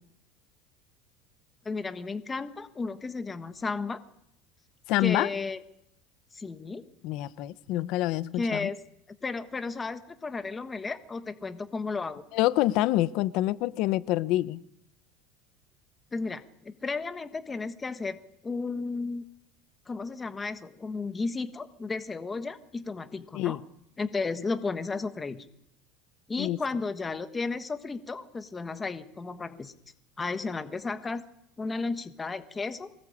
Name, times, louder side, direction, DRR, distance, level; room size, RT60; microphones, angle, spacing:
voice 1, 1.6-4.0 5.0-5.6 6.3-6.8 8.3-8.8 9.2-12.2 16.1-18.2 18.4-19.3 19.9-23.6 24.0-25.4 26.3-29.7 30.2-31.2 31.6-32.9, left 4 dB, 10° left, 10 dB, 1.2 m, -33 dB
voice 2, 4.9-5.3 7.0-8.7 12.3-14.6 23.3-23.6 26.4-26.6, left 15 dB, 50° left, 17 dB, 0.9 m, -26 dB
23.5 x 19.5 x 8.6 m, 0.77 s
cardioid pair, 175°, 0 cm